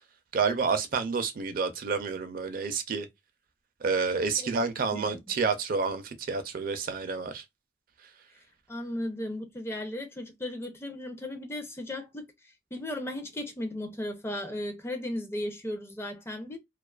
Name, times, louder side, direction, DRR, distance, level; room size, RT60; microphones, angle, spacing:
voice 1, 0.3-3.1 3.8-7.4, right 5 dB, 55° right, 0.4 m, -29 dB
voice 2, 4.9-5.4 8.7-12.3 12.7-16.6, left 1 dB, 15° left, 0.4 m, -36 dB
2.4 x 2.3 x 2.3 m
head